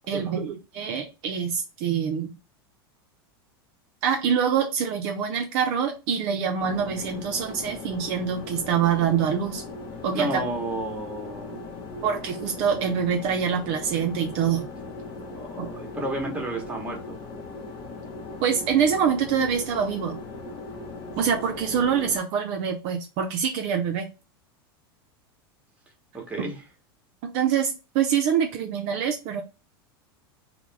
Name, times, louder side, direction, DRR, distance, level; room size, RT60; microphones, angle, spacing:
voice 1, 0.1-2.3 4.0-9.6 10.0-10.4 12.0-14.7 15.6-15.7 18.4-20.2 21.2-24.1 26.4-26.5 27.2-29.4, right 7 dB, 55° right, 0.4 m, -25 dB
sound 1, 6.6-22.2, left 3 dB, 40° left, 0.7 m, -38 dB
voice 2, 10.1-11.6 15.3-17.2 26.1-26.6, right 1 dB, 10° right, 0.9 m, -32 dB
2.3 x 2.1 x 3.1 m
hypercardioid pair, 110°, 13 cm